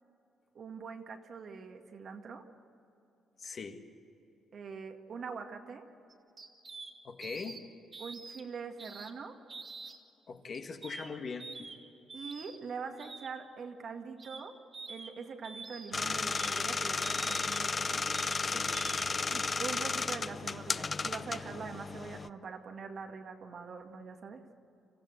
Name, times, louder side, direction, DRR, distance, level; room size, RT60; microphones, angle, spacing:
voice 1, 0.6-2.5 4.5-5.9 8.0-9.4 12.1-14.6 14.9-18.0 19.3-24.4, right 5 dB, 55° right, 4 dB, 1.9 m, -43 dB
voice 2, 3.4-3.8 7.0-7.6 10.3-11.7 18.4-18.8, left 5 dB, 50° left, 5 dB, 1.8 m, -41 dB
sound 1, 6.1-6.9 7.2-7.6 7.9-8.4 8.8-9.1 9.5-10.0 10.5-11.1 11.4-11.8 12.1-12.6 13.0-13.3 14.2-14.4 14.7-15.1 15.4-15.9 16.3-16.6 17.0-17.6 18.1-18.4 18.7-19.0 19.3-19.5, right 4 dB, 40° right, 2.4 m, -46 dB
sound 2, 15.9-22.3, left 4 dB, 30° left, 0.6 m, -33 dB
26.5 x 15.0 x 8.0 m, 2.9 s
cardioid pair, 90°, 0 cm